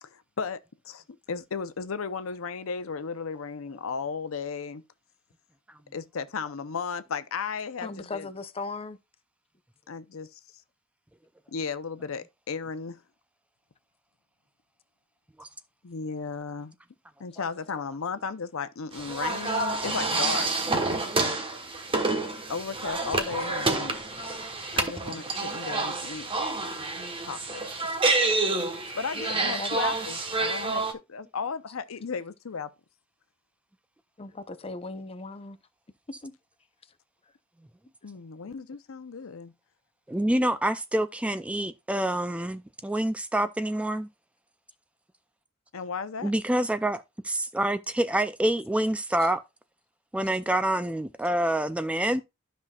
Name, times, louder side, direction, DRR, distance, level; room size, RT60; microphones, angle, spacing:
voice 1, 0.0-4.8 5.9-8.3 9.9-10.4 11.5-13.0 15.8-16.8 17.2-20.5 20.9-21.0 22.5-24.0 24.8-26.3 27.2-27.7 28.9-32.7 38.0-39.5 45.7-46.3, left 5 dB, 80° left, 0.6 m, -35 dB
voice 2, 7.8-9.0 29.4-29.8 34.2-35.6 36.2-36.3, left 3 dB, 30° left, 0.6 m, -37 dB
sound 1, 18.9-30.9, right 3 dB, 25° right, 1.2 m, -28 dB
voice 3, 40.1-44.1 46.2-49.4 50.1-52.2, right 1 dB, 5° right, 0.3 m, -27 dB
12.5 x 5.6 x 2.3 m
head